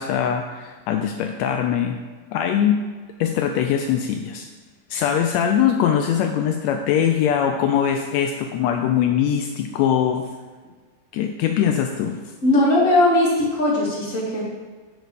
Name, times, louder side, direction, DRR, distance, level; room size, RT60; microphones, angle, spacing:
voice 1, 0.0-2.0 2.3-2.8 3.2-4.5 4.9-10.3 11.1-12.3, left 9 dB, 85° left, 5 dB, 1.5 m, -22 dB
voice 2, 12.4-14.4, left 1 dB, 25° left, -5 dB, 2.3 m, -18 dB
8.4 x 4.7 x 6.7 m, 1.4 s
omnidirectional pair, 3.6 m